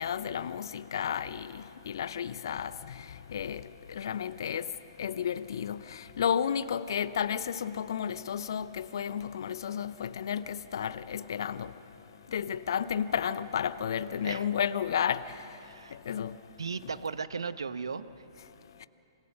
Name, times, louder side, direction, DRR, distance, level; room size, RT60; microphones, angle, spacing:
voice 1, 0.0-2.7 3.3-3.6 3.9-4.7 5.0-11.7 12.3-15.2 16.1-16.3, left 8 dB, 60° left, 0.6 m, -32 dB
voice 2, 15.6-16.0 16.6-18.0, right 5 dB, 75° right, 0.8 m, -36 dB
27.0 x 20.0 x 5.7 m
figure-of-eight pair, 115°, 3 cm